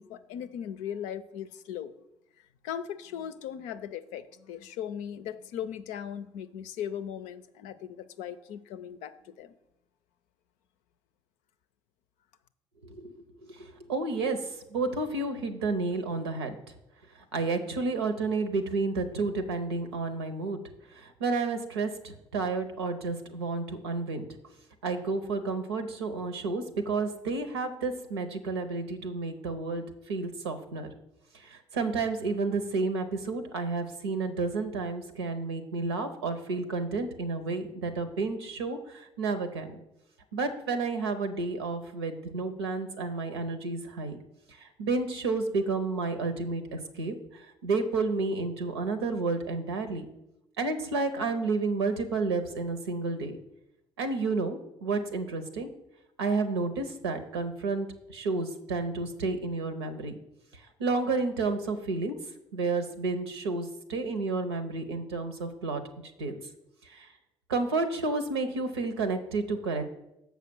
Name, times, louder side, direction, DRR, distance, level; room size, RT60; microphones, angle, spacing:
voice 1, 0.0-1.9 2.6-9.5, left 9 dB, 65° left, 11 dB, 0.5 m, -38 dB
voice 2, 13.9-14.4 14.7-16.6 17.3-20.6 20.9-24.2 24.8-29.8 30.1-30.9 31.7-39.8 40.3-44.2 44.6-47.1 47.6-50.1 50.6-53.4 54.0-55.7 56.2-57.9 58.1-60.2 60.8-62.1 62.5-66.4 66.9-67.1 67.5-69.9, right 3 dB, 85° right, 8 dB, 0.8 m, -31 dB
7.1 x 5.6 x 6.1 m, 0.88 s
figure-of-eight pair, 50°, 13 cm